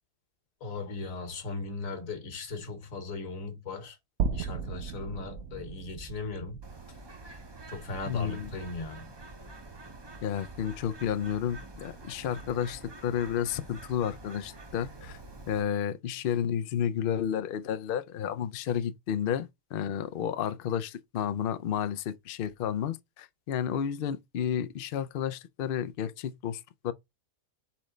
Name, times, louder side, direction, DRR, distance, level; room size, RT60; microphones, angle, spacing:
voice 1, 0.6-4.0 4.3-7.0 7.7-9.1, left 3 dB, 65° left, 1.5 m, -38 dB
sound 1, 4.2-8.4, right 6 dB, 65° right, 0.7 m, -36 dB
Bird, 6.6-15.6, right 2 dB, 30° right, 0.4 m, -47 dB
voice 2, 8.1-8.5 10.2-15.2 15.5-26.9, left 9 dB, 90° left, 0.4 m, -31 dB
4.3 x 3.2 x 3.8 m
omnidirectional pair, 1.6 m